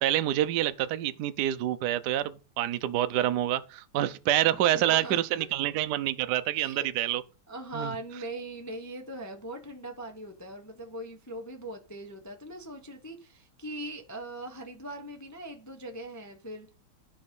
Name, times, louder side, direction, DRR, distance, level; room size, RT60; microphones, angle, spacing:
voice 1, 0.0-7.2 7.7-7.9, right 13 dB, 70° right, 1.0 m, -27 dB
voice 2, 4.5-5.4 6.6-6.9 7.5-16.7, right 1 dB, 20° left, 0.4 m, -41 dB
10.5 x 5.2 x 5.2 m
omnidirectional pair, 2.2 m